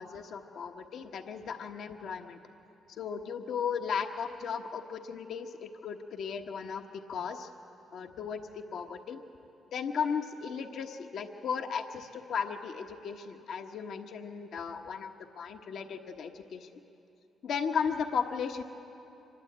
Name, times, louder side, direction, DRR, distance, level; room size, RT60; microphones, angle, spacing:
voice 1, 0.0-2.4 2.9-7.5 7.9-9.2 9.7-16.8 17.4-18.6, left 6 dB, 70° left, 5 dB, 1.2 m, -36 dB
25.0 x 21.0 x 8.8 m, 2.8 s
cardioid pair, 90°, 0 cm